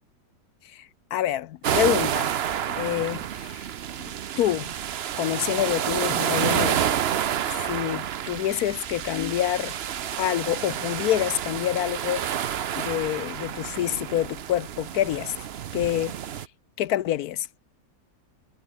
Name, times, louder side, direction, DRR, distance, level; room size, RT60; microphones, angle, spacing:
voice 1, 0.7-2.3 2.7-3.7 4.0-4.7 5.2-6.9 7.5-9.8 10.2-12.2 12.8-15.3 15.7-16.1 16.8-17.5, left 12 dB, 70° left, 1.0 m, -27 dB
sound 1, 1.6-16.5, right 9 dB, 60° right, 0.6 m, -29 dB
omnidirectional pair, 1.9 m